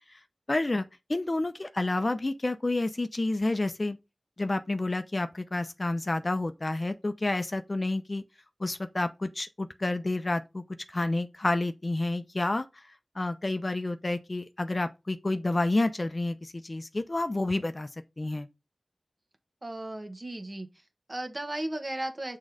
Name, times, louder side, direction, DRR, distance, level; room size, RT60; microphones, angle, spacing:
voice 1, 0.5-4.0 4.4-8.2 8.6-10.6 10.9-12.7 13.2-17.9 18.2-18.5, left 2 dB, 35° left, 0.7 m, -29 dB
voice 2, 19.6-22.4, right 1 dB, 35° right, 1.4 m, -36 dB
6.3 x 3.8 x 4.8 m
wide cardioid pair, 70°, 0 cm